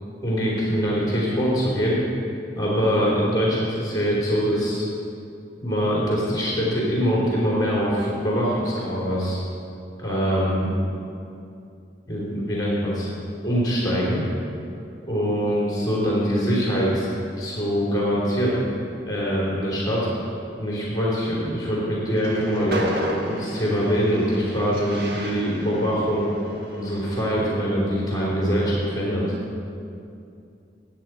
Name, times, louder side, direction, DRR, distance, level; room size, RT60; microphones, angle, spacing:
voice 1, 0.2-2.0 2.6-4.9 5.6-9.4 10.0-10.7 12.1-13.1 13.4-14.2 15.0-17.1 17.4-18.6 19.0-20.1 20.6-22.8 23.2-26.3 26.7-29.3, equal, 25° left, -6 dB, 3.4 m, -23 dB
Train, 22.1-27.4, equal, 60° right, 1.7 m, -32 dB
16.0 x 9.6 x 4.6 m, 2.5 s
head